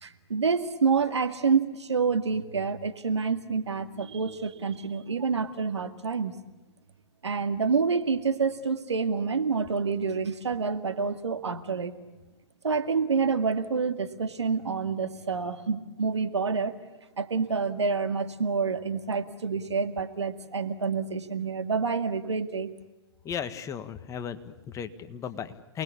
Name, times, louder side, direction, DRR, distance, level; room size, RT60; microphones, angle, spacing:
voice 1, 0.0-6.3 7.2-11.9 12.6-16.8 17.2-22.7, right 5 dB, 85° right, 9 dB, 2.1 m, -28 dB
voice 2, 23.3-25.8, left 8 dB, 20° left, 10 dB, 1.7 m, -36 dB
28.5 x 20.5 x 8.5 m, 1.1 s
hypercardioid pair, 120°, 14 cm